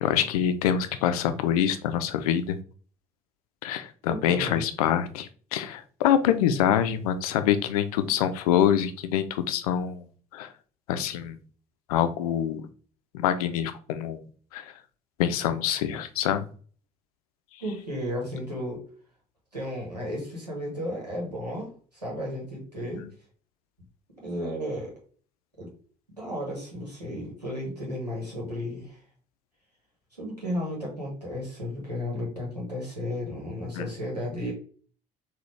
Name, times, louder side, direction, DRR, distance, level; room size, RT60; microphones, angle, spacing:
voice 1, 0.0-2.6 3.6-10.0 10.3-10.5 10.9-11.4 11.9-12.6 13.1-14.2 14.5-14.6 15.2-16.5 33.8-33.9, left 9 dB, 65° left, 10 dB, 0.4 m, -25 dB
voice 2, 4.1-4.7 17.6-18.8 19.5-23.0 24.2-25.0 25.6-25.7 26.1-29.0 30.2-34.5, left 1 dB, 90° right, -3 dB, 1.2 m, -33 dB
4.0 x 2.4 x 3.2 m, 0.42 s
figure-of-eight pair, 55°, 20 cm